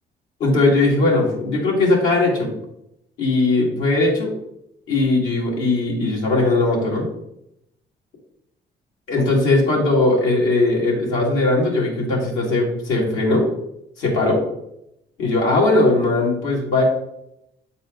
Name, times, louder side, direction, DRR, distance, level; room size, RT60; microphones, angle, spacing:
voice 1, 0.4-2.5 3.2-4.3 4.9-7.1 9.1-13.5 14.0-14.4 15.2-16.8, left 2 dB, 90° left, -2 dB, 2.4 m, -19 dB
9.0 x 4.2 x 3.9 m, 0.80 s
cardioid pair, 90°, 20 cm